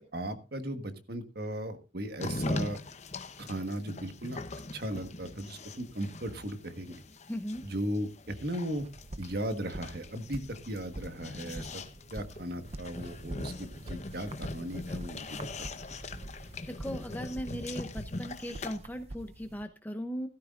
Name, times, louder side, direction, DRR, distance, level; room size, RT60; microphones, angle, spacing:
voice 1, 0.1-2.8 3.4-4.4 4.7-7.0 7.6-8.8 9.2-11.8 12.1-15.7, right 1 dB, 55° right, 8 dB, 1.5 m, -37 dB
sound 1, 2.2-18.8, left 2 dB, 35° left, 0.9 m, -41 dB
voice 2, 7.3-7.6 16.7-20.3, equal, 10° left, 7 dB, 0.7 m, -38 dB
sound 2, 8.7-19.6, right 1 dB, 35° right, 0.6 m, -46 dB
15.5 x 13.0 x 2.5 m, 0.29 s
head